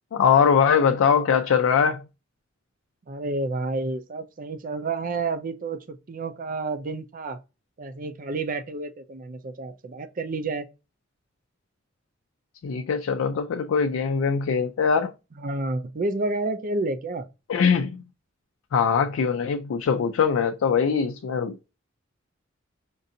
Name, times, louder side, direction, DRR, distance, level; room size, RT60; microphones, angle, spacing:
voice 1, 0.1-2.0 12.6-15.1 17.5-18.0 18.7-21.7, left 6 dB, 85° left, 0.4 m, -22 dB
voice 2, 3.1-7.4 7.8-10.7 15.4-17.3, right 3 dB, 45° right, 0.5 m, -30 dB
5.2 x 2.5 x 2.7 m
head